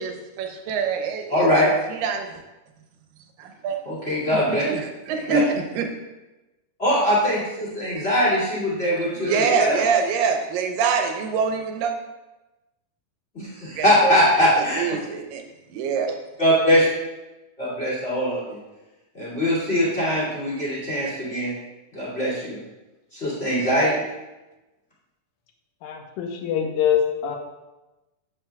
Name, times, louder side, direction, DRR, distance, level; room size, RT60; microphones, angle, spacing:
voice 1, 0.0-2.4 3.4-3.8 4.7-5.9 9.2-11.9 13.7-14.2 14.7-15.4 15.7-16.2, right 6 dB, 80° right, 4 dB, 2.4 m, -25 dB
voice 2, 1.3-1.7 3.8-4.6 5.3-5.4 6.8-9.8 13.3-14.9 16.4-16.9 17.6-18.6 19.1-21.5 21.9-22.6 23.1-24.0, equal, 20° left, -8 dB, 2.0 m, -22 dB
voice 3, 25.8-27.4, left 8 dB, 85° left, 3 dB, 2.5 m, -24 dB
8.0 x 7.3 x 2.3 m, 1.1 s
omnidirectional pair, 4.0 m